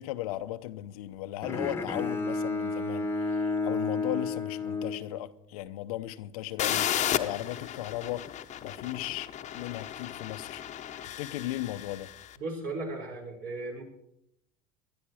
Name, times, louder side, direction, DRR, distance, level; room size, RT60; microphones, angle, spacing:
voice 1, 0.0-8.3 8.6-10.6 11.0-12.1, left 14 dB, 80° left, 0.8 m, -36 dB
Bowed string instrument, 1.4-5.6, left 3 dB, 15° left, 1.3 m, -32 dB
sound 1, 6.6-12.3, left 10 dB, 40° left, 1.0 m, -34 dB
voice 2, 12.4-13.8, right 2 dB, 50° right, 5.8 m, -36 dB
18.0 x 12.0 x 4.8 m
supercardioid pair, 95°, 18 cm